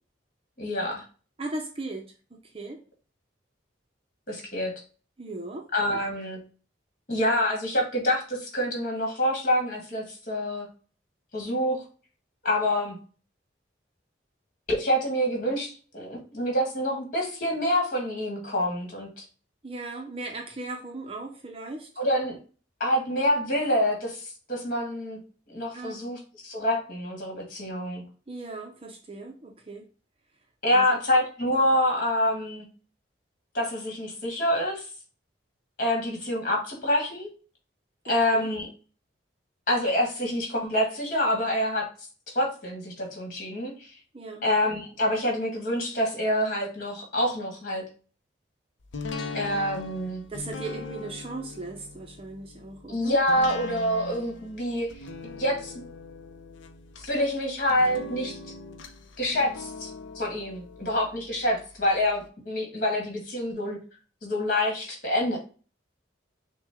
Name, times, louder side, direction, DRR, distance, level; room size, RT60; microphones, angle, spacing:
voice 1, 0.6-1.0 4.3-4.7 5.7-6.4 7.1-10.7 11.3-11.8 12.4-13.0 14.7-19.2 22.0-22.4 22.8-25.2 25.5-28.0 30.6-32.7 33.5-34.9 35.8-37.3 38.0-38.7 39.7-41.8 42.3-43.9 44.4-47.8 49.3-50.2 52.9-54.9 55.4-55.7 57.0-58.4 59.2-59.9 60.1-63.8 64.2-65.4, left 1 dB, 45° left, 1 dB, 1.6 m, -26 dB
voice 2, 1.4-2.8 5.2-6.0 19.6-21.9 25.7-26.0 28.3-29.9 30.7-31.0 38.1-38.5 44.1-44.5 50.3-53.2, right 2 dB, 30° right, 2 dB, 0.5 m, -38 dB
sound 1, 48.9-61.9 62.3-62.4, left 3 dB, 75° left, 0.6 m, -41 dB
5.9 x 2.2 x 3.5 m, 0.37 s
head